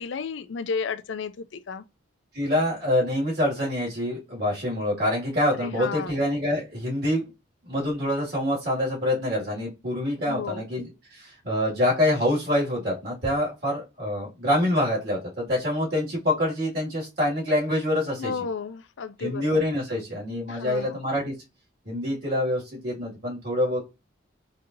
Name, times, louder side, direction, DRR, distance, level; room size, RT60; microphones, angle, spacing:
voice 1, 0.0-1.8 5.6-6.1 10.3-10.6 18.2-19.4 20.5-21.0, left 5 dB, 75° left, 0.5 m, -32 dB
voice 2, 2.3-7.3 7.6-18.3 19.2-21.3 21.9-23.8, left 1 dB, 55° right, 2.2 m, -26 dB
5.2 x 2.8 x 2.6 m
head